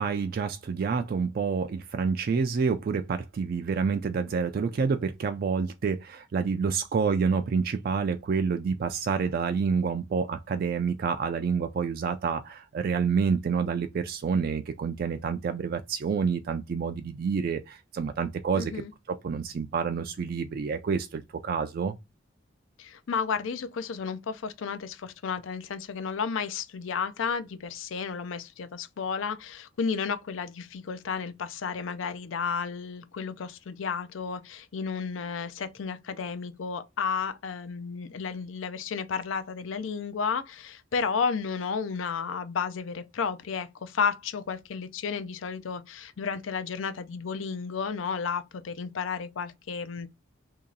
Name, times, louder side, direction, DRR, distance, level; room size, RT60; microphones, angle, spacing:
voice 1, 0.0-18.8 19.1-22.0, right 5 dB, 50° right, 0.3 m, -28 dB
voice 2, 18.5-18.9 22.8-50.1, left 6 dB, 80° left, 0.5 m, -32 dB
3.0 x 2.8 x 3.7 m
head